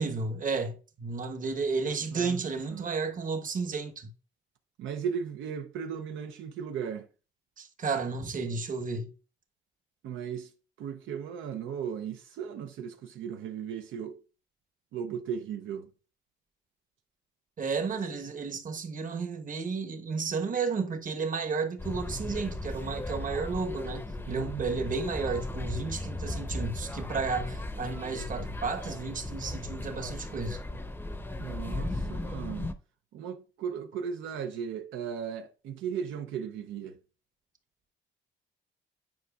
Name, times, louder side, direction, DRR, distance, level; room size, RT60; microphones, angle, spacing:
voice 1, 0.0-4.1 7.6-9.1 17.6-30.6, right 4 dB, 40° right, 1.1 m, -32 dB
voice 2, 2.1-2.4 2.7-2.9 4.8-7.1 10.0-10.5 10.8-14.2 14.9-15.9 24.3-24.6 31.4-32.7 33.1-37.0, right 7 dB, 80° right, 0.6 m, -36 dB
sound 1, 21.8-32.7, left 2 dB, 10° left, 0.6 m, -36 dB
9.4 x 4.9 x 2.3 m
cardioid pair, 90°, 20 cm